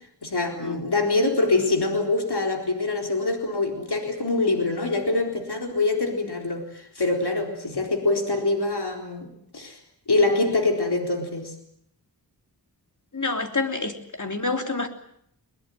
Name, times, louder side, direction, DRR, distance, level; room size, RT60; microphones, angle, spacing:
voice 1, 0.2-9.8 10.1-11.5, left 2 dB, 75° left, 3 dB, 4.2 m, -24 dB
voice 2, 13.1-13.9 14.2-14.9, left 3 dB, 45° left, 5 dB, 3.3 m, -27 dB
22.0 x 20.5 x 9.3 m, 0.70 s
wide cardioid pair, 50°, 40 cm